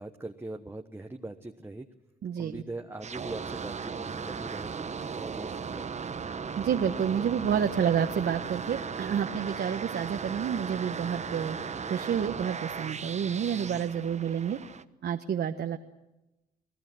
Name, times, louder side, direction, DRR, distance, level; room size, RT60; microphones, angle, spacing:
voice 1, 0.0-1.9 2.4-4.9 5.1-6.2, right 2 dB, 10° right, 4 dB, 1.1 m, -41 dB
voice 2, 2.2-2.6 6.6-11.6 11.9-14.6 15.0-15.8, right 8 dB, 55° right, 5 dB, 1.2 m, -29 dB
sound 1, 3.0-14.8, right 6 dB, 35° right, 1.0 m, -37 dB
28.0 x 18.0 x 7.7 m, 0.98 s
cardioid pair, 90°, 20 cm